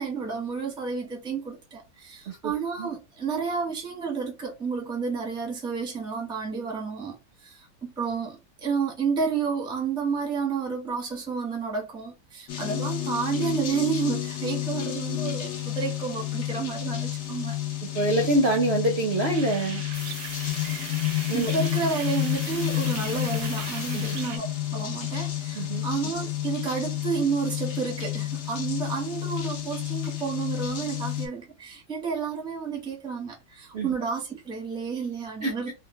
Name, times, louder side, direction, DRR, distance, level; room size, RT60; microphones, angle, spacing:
voice 1, 0.0-17.6 21.3-35.7, right 5 dB, 5° right, 0.5 m, -31 dB
sound 1, 12.5-31.3, left 14 dB, 75° left, 0.6 m, -30 dB
voice 2, 17.9-19.8 21.3-21.5 23.9-24.1 25.6-25.9 33.7-33.9 35.4-35.5, right 2 dB, 60° right, 0.6 m, -25 dB
sound 2, 19.3-24.4, right 8 dB, 85° right, 1.4 m, -40 dB
sound 3, 19.9-24.4, left 3 dB, 40° left, 0.8 m, -42 dB
3.2 x 2.2 x 3.0 m
omnidirectional pair, 2.0 m